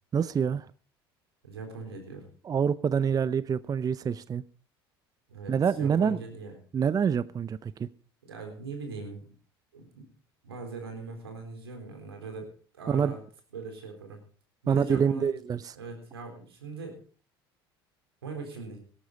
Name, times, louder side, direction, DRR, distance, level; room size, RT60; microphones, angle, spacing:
voice 1, 0.1-0.7 2.4-4.4 5.5-6.2 6.7-7.9 12.9-13.2 14.7-15.7, right 7 dB, 30° right, 17 dB, 0.6 m, -26 dB
voice 2, 1.4-2.3 5.3-6.6 8.2-9.3 9.7-10.1 10.4-13.2 13.5-14.2 14.6-15.3 15.8-17.0 18.2-18.8, right 3 dB, 90° right, 4 dB, 4.0 m, -40 dB
17.5 x 13.0 x 4.0 m, 0.41 s
hypercardioid pair, 70°, 13 cm